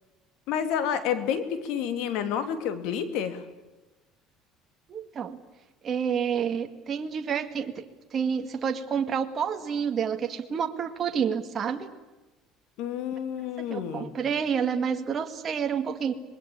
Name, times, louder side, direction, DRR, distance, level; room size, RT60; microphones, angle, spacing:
voice 1, 0.5-3.4 12.8-14.2, left 8 dB, 75° left, 10 dB, 2.9 m, -29 dB
voice 2, 4.9-5.4 5.8-7.8 8.1-11.9 13.6-16.1, right 7 dB, 35° right, 5 dB, 2.0 m, -29 dB
26.0 x 21.0 x 8.7 m, 1.1 s
cardioid pair, 115°, 0 cm